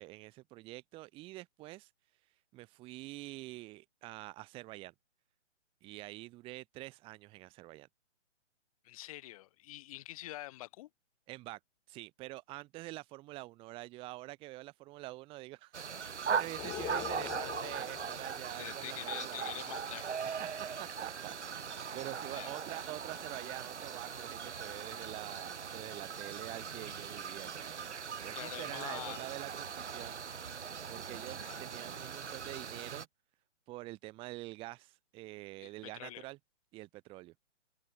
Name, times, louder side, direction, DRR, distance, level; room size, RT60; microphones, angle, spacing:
voice 1, 0.0-1.9 2.5-4.9 5.8-7.9 11.3-11.6 11.9-19.5 20.2-28.0 28.2-30.2 30.9-33.1 33.7-36.4 36.7-37.3, right 19 dB, 15° right, 1.6 m, -46 dB
voice 2, 8.8-10.9 18.6-20.1 22.3-22.5 28.3-29.3 31.4-31.6 35.6-36.3, left 16 dB, 30° left, 2.2 m, -45 dB
sound 1, 15.7-33.1, right 6 dB, 70° right, 4.2 m, -40 dB
Singing, 16.6-18.6, left 18 dB, 10° left, 1.0 m, -43 dB
hypercardioid pair, 155°, 37 cm